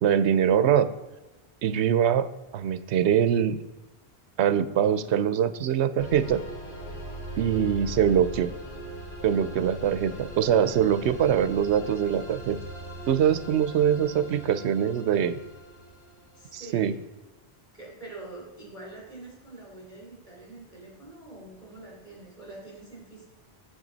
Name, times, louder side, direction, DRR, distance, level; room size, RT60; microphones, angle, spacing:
voice 1, 0.0-0.9 1.6-3.6 4.4-6.4 7.4-8.5 9.2-12.6 13.1-15.4 16.5-16.9, right 9 dB, 85° right, 14 dB, 0.9 m, -23 dB
sound 1, 6.0-16.6, right 1 dB, 70° left, 3.1 m, -40 dB
voice 2, 16.4-17.0 17.7-23.2, right 2 dB, 30° left, -2 dB, 3.7 m, -45 dB
9.1 x 7.7 x 4.0 m, 1.1 s
omnidirectional pair, 1.1 m